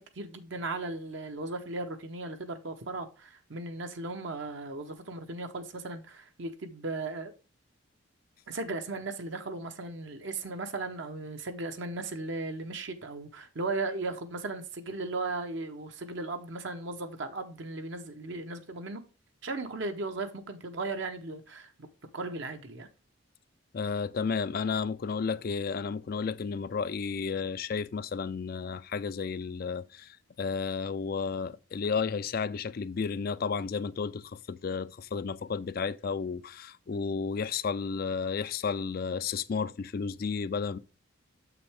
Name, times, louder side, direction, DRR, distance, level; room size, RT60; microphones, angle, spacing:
voice 1, 0.0-7.3 8.5-19.0 19.4-21.9 22.1-22.9, right 3 dB, 55° right, 0.7 m, -36 dB
voice 2, 23.7-40.8, left 5 dB, 45° left, 0.3 m, -32 dB
7.1 x 5.9 x 3.4 m
head